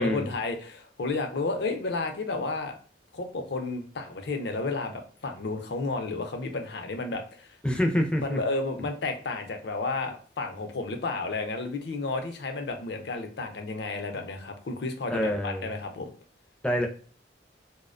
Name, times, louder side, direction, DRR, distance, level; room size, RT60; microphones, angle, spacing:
voice 1, 0.0-2.7 3.1-7.6 8.2-16.1, left 3 dB, 65° left, 5 dB, 0.5 m, -32 dB
voice 2, 7.6-8.4 15.1-15.7 16.6-16.9, equal, 5° left, 1 dB, 0.4 m, -26 dB
2.4 x 2.1 x 2.4 m, 0.42 s
head